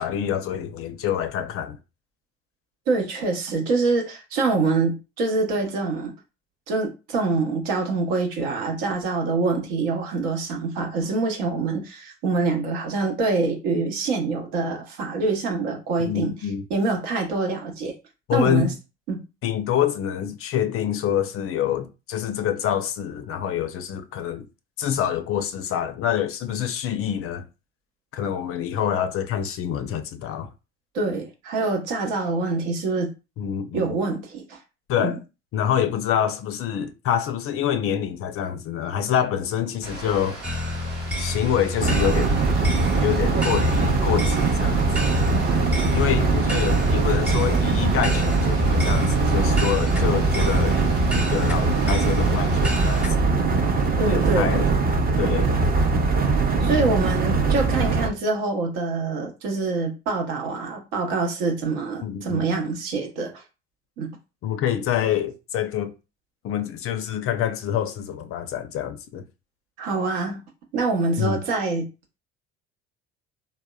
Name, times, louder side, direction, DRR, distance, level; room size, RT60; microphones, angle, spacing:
voice 1, 0.0-1.8 16.0-16.6 18.3-18.7 19.4-24.5 24.8-27.5 28.1-30.5 33.4-33.9 34.9-35.2 35.5-40.4 41.2-42.4 43.0-45.2 45.9-50.8 51.1-53.3 54.0-54.7 55.2-55.5 62.0-62.5 64.4-65.9 66.4-69.2 71.2-71.4, left 9 dB, 40° left, 0.4 m, -26 dB
voice 2, 2.9-6.1 6.7-16.3 16.7-17.9 18.3-18.7 19.1-19.2 30.9-33.1 33.7-34.6 35.0-35.2 43.3-43.5 54.0-54.5 56.6-63.4 64.0-64.2 69.8-70.4 70.7-71.9, right 3 dB, 65° right, 0.9 m, -25 dB
sound 1, 39.8-53.0, right 2 dB, 85° right, 1.2 m, -39 dB
sound 2, 40.4-53.1, left 2 dB, 5° right, 0.9 m, -30 dB
sound 3, 41.8-58.1, right 4 dB, 25° right, 0.6 m, -21 dB
3.5 x 2.1 x 2.2 m
hypercardioid pair, 60°, 35 cm